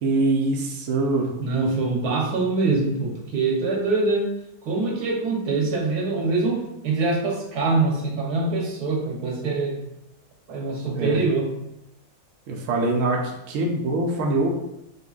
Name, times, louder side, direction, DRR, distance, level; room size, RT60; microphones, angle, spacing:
voice 1, 0.0-1.3 10.9-11.2 12.5-14.5, right 2 dB, 65° right, 0 dB, 0.9 m, -23 dB
voice 2, 1.4-4.3 4.6-9.8 10.5-11.5, right 3 dB, 80° right, -2 dB, 1.5 m, -24 dB
5.2 x 3.1 x 2.4 m, 0.85 s
omnidirectional pair, 1.6 m